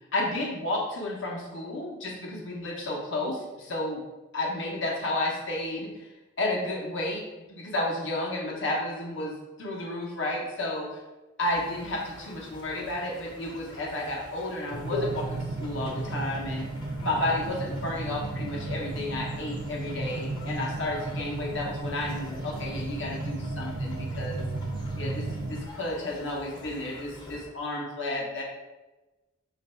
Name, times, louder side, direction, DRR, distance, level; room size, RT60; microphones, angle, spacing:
voice 1, 0.1-4.0 4.3-6.1 6.4-11.0 11.4-16.7 17.0-24.4 25.0-28.4, left 1 dB, 65° left, -1 dB, 0.8 m, -32 dB
sound 1, 11.4-27.5, left 2 dB, 25° left, 0.6 m, -44 dB
sound 2, 14.7-25.7, right 2 dB, 40° right, 0.3 m, -34 dB
3.0 x 2.5 x 4.4 m, 1.1 s
head